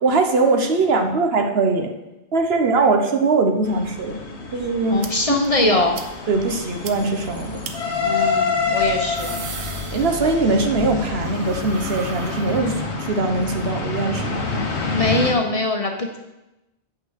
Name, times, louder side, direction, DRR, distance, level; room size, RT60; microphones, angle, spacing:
voice 1, 0.0-1.9 2.3-5.1 5.6-5.8 6.3-7.6 9.9-14.5, right 3 dB, 65° right, 4 dB, 1.2 m, -21 dB
sound 1, 3.6-15.3, left 4 dB, 85° left, 1.5 m, -27 dB
voice 2, 4.9-6.0 8.0-9.3 14.9-16.2, left 2 dB, 35° left, 3 dB, 1.0 m, -22 dB
sound 2, 5.0-5.1 5.4-5.5 5.9-6.1 6.4-6.5 6.8-6.9 7.6-7.7 8.9-10.5 10.8-13.0, right 5 dB, 90° right, 1.1 m, -37 dB
8.4 x 6.2 x 6.4 m, 0.97 s
omnidirectional pair, 1.1 m